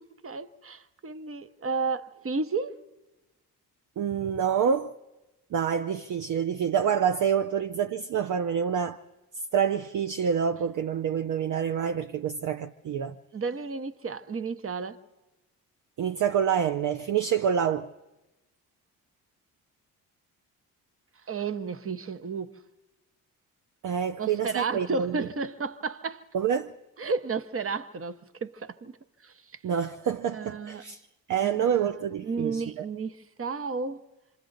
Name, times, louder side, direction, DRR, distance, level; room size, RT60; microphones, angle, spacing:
voice 1, 0.2-2.8 13.3-15.0 21.3-22.5 24.2-26.3 27.0-28.9 29.2-29.6 30.3-30.8 31.4-31.7 32.2-34.0, right 4 dB, 35° right, 1.0 m, -32 dB
voice 2, 4.0-4.9 5.5-9.0 9.5-13.2 16.0-17.9 23.8-25.2 26.3-26.7 29.6-32.8, right 8 dB, 50° right, 0.7 m, -27 dB
27.5 x 26.0 x 4.0 m
supercardioid pair, 60°, 39 cm